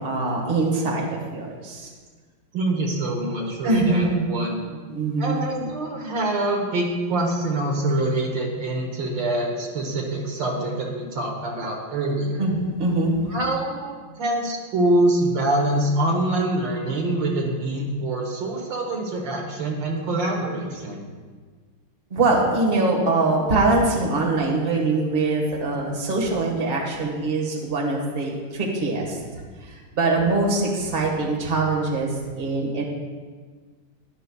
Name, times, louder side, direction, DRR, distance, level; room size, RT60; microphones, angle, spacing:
voice 1, 0.0-1.9 3.6-4.3 4.7-5.4 12.4-13.2 22.1-29.2 29.6-32.8, right 2 dB, 30° right, -2 dB, 1.6 m, -23 dB
voice 2, 2.5-4.6 5.2-12.4 13.3-21.0, right 1 dB, 70° right, 0 dB, 1.9 m, -25 dB
12.0 x 11.5 x 2.3 m, 1.5 s
omnidirectional pair, 2.1 m